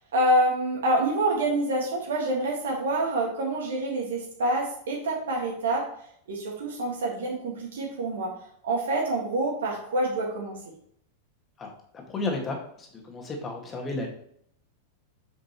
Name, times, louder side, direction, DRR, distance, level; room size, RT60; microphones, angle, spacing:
voice 1, 0.1-5.9 6.3-8.3 8.6-10.5, right 1 dB, 65° right, -2 dB, 1.8 m, -26 dB
voice 2, 11.6-14.1, left 2 dB, 20° left, 1 dB, 1.9 m, -33 dB
7.9 x 5.9 x 3.1 m, 0.66 s
figure-of-eight pair, 90°, 0 cm